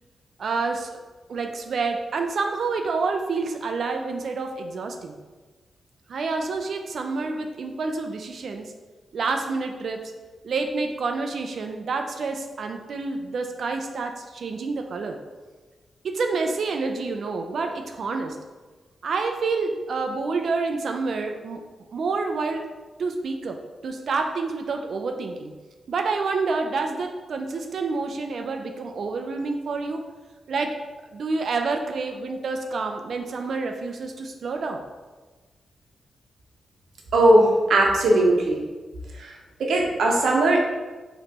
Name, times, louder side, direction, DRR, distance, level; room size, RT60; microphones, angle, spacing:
voice 1, 0.4-1.0 1.3-5.2 6.1-8.7 9.1-10.1 10.4-15.2 16.0-18.4 19.0-21.7 21.9-22.7 23.0-25.5 25.9-30.0 30.5-30.8 31.1-34.8, right 4 dB, 55° right, 5 dB, 0.3 m, -28 dB
voice 2, 37.1-38.6 39.1-40.6, right 1 dB, 85° right, 0 dB, 0.8 m, -19 dB
5.1 x 3.0 x 2.9 m, 1.3 s
wide cardioid pair, 165°, 0 cm